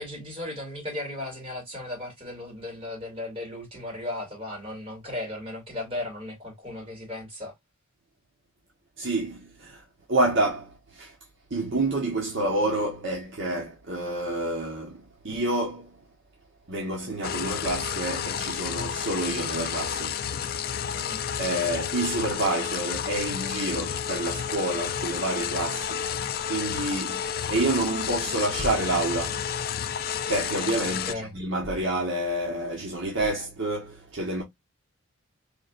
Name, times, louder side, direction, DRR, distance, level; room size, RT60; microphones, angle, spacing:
voice 1, 0.0-7.5 20.9-21.2 30.8-31.3, left 1 dB, 25° right, 2.4 m, -36 dB
voice 2, 9.0-9.8 10.1-11.1 11.5-16.0 16.7-20.3 21.4-26.1 26.5-29.5 30.3-34.4, right 2 dB, 55° right, 1.2 m, -28 dB
sound 1, 17.2-31.1, left 8 dB, 45° left, 0.3 m, -31 dB
5.0 x 2.9 x 2.4 m
head